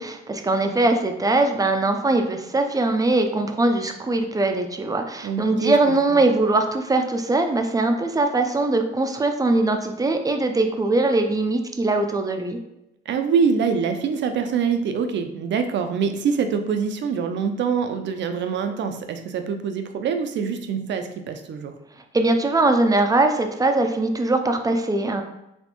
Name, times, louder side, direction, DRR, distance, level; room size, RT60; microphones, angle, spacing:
voice 1, 0.0-12.6 22.1-25.2, right 2 dB, 20° right, 6 dB, 0.5 m, -21 dB
voice 2, 5.2-6.2 13.1-21.7, right 6 dB, 65° right, 7 dB, 0.6 m, -25 dB
4.3 x 3.2 x 3.0 m, 0.87 s
cardioid pair, 90°, 20 cm